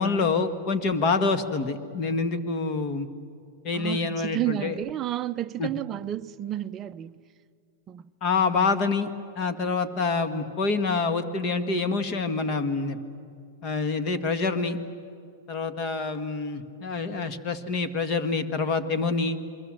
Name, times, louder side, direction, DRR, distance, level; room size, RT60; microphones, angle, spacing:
voice 1, 0.0-3.1 3.6-4.8 5.6-5.7 8.2-9.1 9.3-13.0 13.6-14.8 15.5-19.4, left 4 dB, 35° left, 1.6 m, -26 dB
voice 2, 3.7-7.2 7.9-8.1, right 13 dB, 25° right, 0.6 m, -31 dB
28.5 x 22.5 x 7.7 m
supercardioid pair, 150°, 0 cm